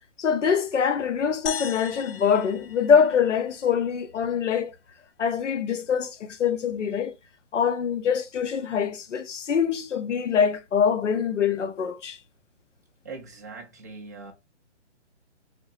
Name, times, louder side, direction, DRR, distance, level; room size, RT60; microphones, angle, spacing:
voice 1, 0.2-4.7 5.2-7.1 7.5-12.2, left 7 dB, 90° left, 0.8 m, -24 dB
sound 1, 1.5-3.9, left 7 dB, 55° left, 0.5 m, -37 dB
voice 2, 13.0-14.3, right 4 dB, 15° right, 0.4 m, -41 dB
3.5 x 2.8 x 3.0 m
hypercardioid pair, 155°, 35 cm